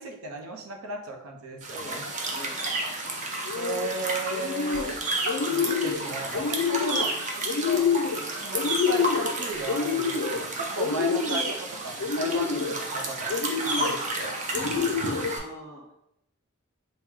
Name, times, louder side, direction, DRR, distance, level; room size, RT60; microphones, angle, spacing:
voice 1, 0.0-2.0 3.5-4.9 5.4-7.9 8.1-13.4 13.8-14.3, right 3 dB, 75° right, 3 dB, 0.6 m, -36 dB
sound 1, 1.6-15.4, right 2 dB, 35° right, 0.6 m, -31 dB
voice 2, 1.7-2.8 14.5-15.8, left 1 dB, 10° left, -3 dB, 0.6 m, -43 dB
sound 2, 3.5-3.9 4.3-5.0 5.2-6.0 6.3-7.1 7.5-8.2 8.5-9.3 9.7-10.4 10.8-11.5 12.0-12.8 13.3-14.0 14.5-15.3, left 6 dB, 65° left, 0.4 m, -27 dB
4.5 x 2.1 x 3.6 m, 0.84 s
head